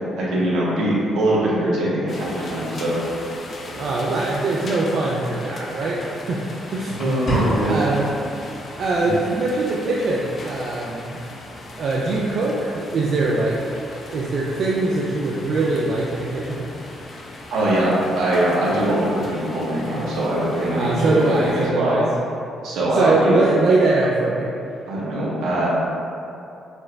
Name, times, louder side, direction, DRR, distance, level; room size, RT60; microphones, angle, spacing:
voice 1, 0.2-3.0 7.0-7.9 9.0-9.1 17.5-22.0 22.6-23.4 24.9-25.7, right 1 dB, 85° right, -6 dB, 0.9 m, -22 dB
sound 1, 2.1-21.7, left 2 dB, 50° left, 0.4 m, -38 dB
voice 2, 3.7-6.4 6.7-7.0 7.3-8.1 8.8-11.2 11.8-13.6 14.1-16.7 20.7-22.0 22.9-24.5, right 2 dB, 60° right, -4 dB, 0.3 m, -22 dB
sound 2, 7.3-8.3, equal, 65° left, 1.3 m, -25 dB
4.2 x 3.2 x 2.2 m, 2.7 s
cardioid pair, 90°, 0 cm